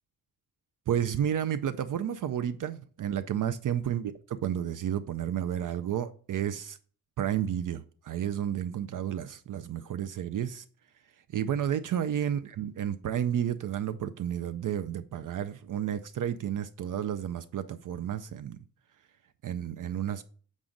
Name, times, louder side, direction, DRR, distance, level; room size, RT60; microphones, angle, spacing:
voice 1, 0.9-4.1 4.4-6.8 7.2-10.6 11.3-18.6 19.4-20.2, right 10 dB, 60° right, 0.4 m, -31 dB
7.3 x 5.1 x 3.8 m
wide cardioid pair, 180°, 36 cm